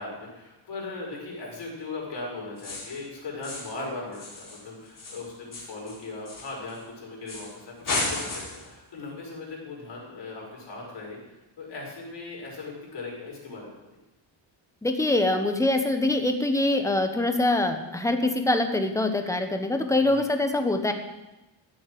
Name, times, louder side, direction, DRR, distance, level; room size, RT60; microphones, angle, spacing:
voice 1, 0.0-11.2 11.6-13.8 20.0-20.3, left 3 dB, 65° left, -3 dB, 5.7 m, -38 dB
sound 1, 2.6-3.0 3.4-3.8 4.1-6.8 7.3-7.5 7.8-8.7, left 2 dB, 45° left, 4.0 m, -34 dB
voice 2, 14.8-20.9, left 2 dB, 5° left, 6 dB, 1.1 m, -24 dB
14.5 x 7.9 x 7.7 m, 1.0 s
wide cardioid pair, 180°, 46 cm